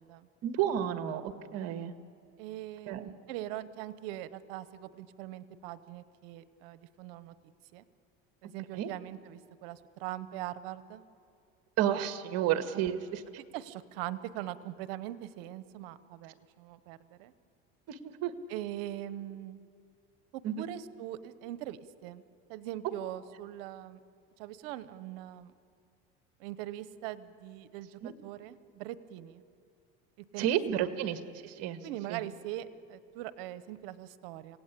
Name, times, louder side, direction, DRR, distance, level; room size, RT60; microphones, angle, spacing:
voice 1, 0.4-1.9 2.9-3.0 8.7-8.9 11.8-13.2 17.9-18.3 20.4-20.7 28.0-28.1 30.4-31.8 32.1-32.2, right 10 dB, 60° right, 8 dB, 1.7 m, -31 dB
voice 2, 2.4-7.3 7.7-7.8 8.4-11.1 13.5-17.3 18.5-19.6 20.3-22.2 22.5-24.0 24.4-25.5 26.4-29.4 30.3-30.5 30.8-30.9 31.8-34.6, right 13 dB, 85° right, 14 dB, 1.0 m, -41 dB
28.0 x 17.5 x 8.4 m, 2.3 s
cardioid pair, 125°, 29 cm